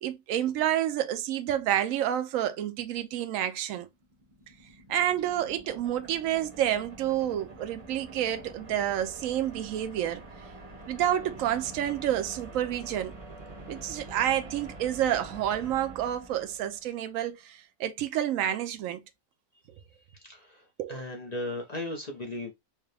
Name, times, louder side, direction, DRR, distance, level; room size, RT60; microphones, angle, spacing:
voice 1, 0.0-3.9 4.9-10.2 10.9-13.2 13.7-19.0 20.8-21.0, right 11 dB, 70° right, 0.8 m, -29 dB
sound 1, 3.9-17.0, right 2 dB, 30° right, 0.7 m, -46 dB
voice 2, 20.1-22.5, left 1 dB, 50° left, 0.4 m, -37 dB
4.6 x 2.2 x 3.3 m
omnidirectional pair, 1.9 m